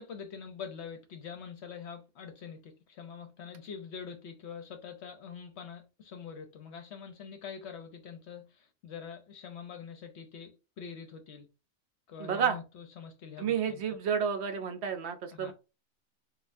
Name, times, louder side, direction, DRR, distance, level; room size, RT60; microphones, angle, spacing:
voice 1, 0.0-11.5 12.1-13.8 15.3-15.5, left 6 dB, 60° left, 0.8 m, -45 dB
voice 2, 12.2-12.6 13.4-15.5, right 7 dB, 65° right, 0.7 m, -30 dB
4.0 x 2.4 x 2.5 m
omnidirectional pair, 1.4 m